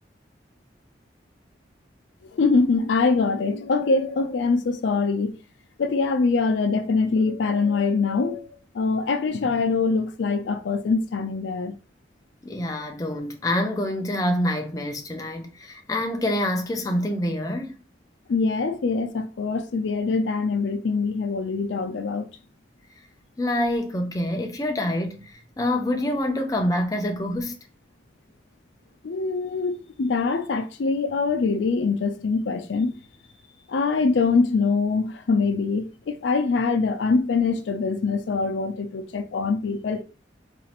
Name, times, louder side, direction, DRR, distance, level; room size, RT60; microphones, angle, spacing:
voice 1, 2.2-5.4 5.8-8.5 8.7-11.8 18.3-22.3 29.0-33.0 33.7-40.0, left 4 dB, 75° left, 0.4 m, -23 dB
voice 2, 12.4-17.8 23.4-27.5, left 1 dB, 20° left, 0.4 m, -26 dB
4.0 x 2.4 x 2.8 m
head